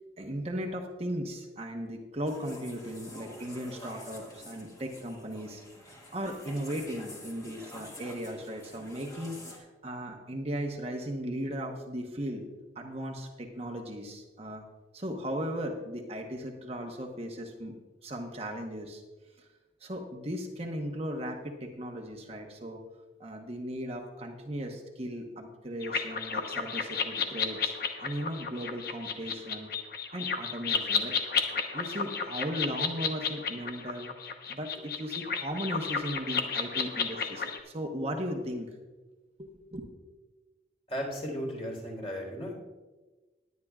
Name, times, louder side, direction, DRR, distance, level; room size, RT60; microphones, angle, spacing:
voice 1, 0.2-5.6 6.1-12.4 12.7-14.6 14.9-17.7 18.0-19.0 19.4-19.5 19.8-22.8 23.2-27.7 28.0-29.7 30.1-31.2 31.7-34.1 34.5-38.7 39.4-39.9, equal, 35° right, 2 dB, 1.0 m, -37 dB
sound 1, 2.3-9.6, left 1 dB, 20° left, 1.8 m, -48 dB
sound 2, 25.8-37.6, left 6 dB, 60° left, 1.0 m, -32 dB
voice 2, 40.9-42.6, equal, 35° left, -1 dB, 3.8 m, -35 dB
20.0 x 9.4 x 2.4 m, 1.2 s
head